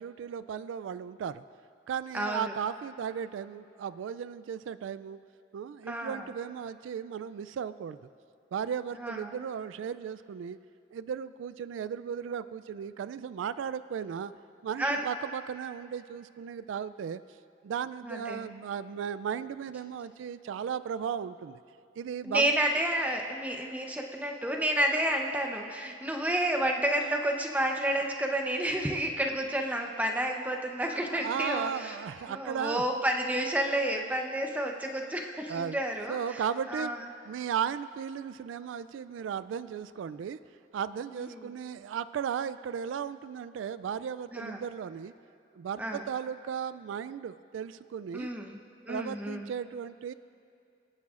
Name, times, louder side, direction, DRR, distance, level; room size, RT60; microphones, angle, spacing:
voice 1, 0.0-1.4 1.9-5.2 5.5-8.0 8.5-10.6 10.9-14.3 14.6-17.2 17.6-21.6 22.0-22.5 30.9-32.8 35.4-35.8 36.1-36.9 37.2-40.4 40.7-45.1 45.5-48.3 48.9-50.1, right 7 dB, 90° right, 16 dB, 0.3 m, -35 dB
voice 2, 5.9-6.2 9.0-9.4 14.8-15.0 18.0-18.4 22.2-31.9 32.3-36.4 36.7-37.0 41.3-41.5 44.3-44.6 45.8-46.0 48.1-48.6 48.9-49.5, right 1 dB, 10° right, 2 dB, 0.7 m, -30 dB
24.5 x 9.7 x 2.5 m, 2.6 s
head